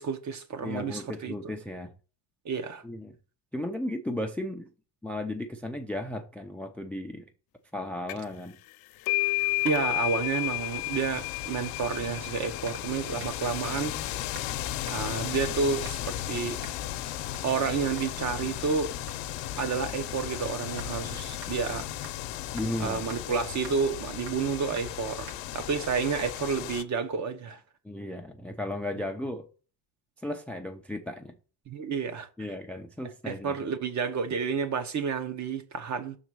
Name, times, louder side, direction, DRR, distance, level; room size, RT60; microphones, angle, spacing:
voice 1, 0.0-1.5 2.4-2.8 9.6-14.0 14.9-16.6 17.4-18.9 19.6-21.9 22.8-27.6 31.7-32.3 33.2-36.2, right 5 dB, 40° right, 1.0 m, -30 dB
voice 2, 0.6-1.9 2.8-3.1 3.5-4.7 5.0-7.2 7.7-8.6 22.5-23.0 27.8-29.5 30.2-31.3 32.4-33.6, left 1 dB, 5° left, 0.4 m, -35 dB
sound 1, 8.1-8.4 8.7-16.0, left 22 dB, 55° left, 0.5 m, -33 dB
sound 2, 9.3-26.8, left 13 dB, 80° left, 0.8 m, -36 dB
sound 3, 12.7-12.9 13.2-13.4 13.8-14.0 14.3-14.5 14.9-15.2 15.8-16.2 16.6-16.8 17.3-17.5 18.0-18.2 18.5-18.8 19.1-19.2 19.6-21.0 21.4-21.5 22.0-22.3 22.6-22.7 23.1-23.2 23.6-23.8 24.3-24.5 24.8-25.0 25.3-25.4 25.8-26.0 26.3-26.4, right 5 dB, 75° right, 1.9 m, -48 dB
6.4 x 4.0 x 6.2 m
cardioid pair, 145°, 43 cm